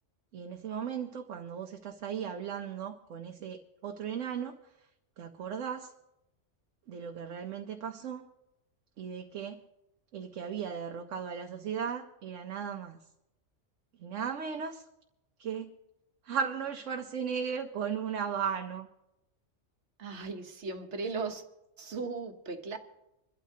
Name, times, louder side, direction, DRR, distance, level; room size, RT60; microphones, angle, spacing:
voice 1, 0.3-4.5 5.2-5.9 6.9-8.3 9.0-9.6 10.1-13.0 14.0-14.8 15.4-15.7 16.2-18.9, right 7 dB, 85° right, 1.1 m, -36 dB
voice 2, 20.0-21.4 21.8-22.8, right 4 dB, 70° right, 1.4 m, -37 dB
26.0 x 12.5 x 2.8 m
omnidirectional pair, 1.3 m